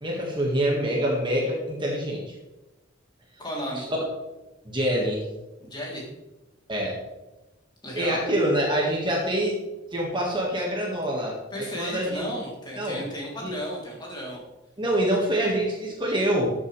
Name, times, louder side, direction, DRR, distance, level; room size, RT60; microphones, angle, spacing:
voice 1, 0.0-2.3 3.8-4.0 4.7-5.3 6.7-7.0 7.9-9.6 9.9-12.2 12.8-13.0 13.4-13.6 14.8-16.5, right 1 dB, 25° right, -2 dB, 1.9 m, -26 dB
voice 2, 3.4-3.9 5.6-6.1 7.8-8.2 11.5-14.4, equal, 20° left, -4 dB, 3.4 m, -34 dB
13.0 x 7.7 x 3.4 m, 1.0 s
head